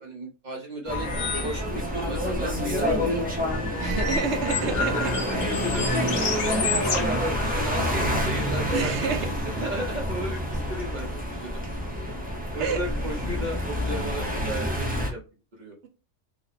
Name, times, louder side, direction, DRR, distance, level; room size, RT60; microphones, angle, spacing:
voice 1, 0.0-3.2 4.5-6.5 6.8-11.6 12.5-15.2 15.6-15.8, right 1 dB, 45° right, 0 dB, 0.7 m, -35 dB
sound 1, 0.9-1.6 2.0-2.1 2.9-7.8, left 5 dB, 65° left, 0.9 m, -31 dB
sound 2, 0.9-15.1, equal, 10° right, 0.4 m, -28 dB
voice 2, 3.8-5.1 8.7-9.2 12.6-12.8, right 5 dB, 65° right, 5 dB, 0.9 m, -28 dB
3.0 x 2.0 x 3.9 m, 0.32 s
omnidirectional pair, 1.3 m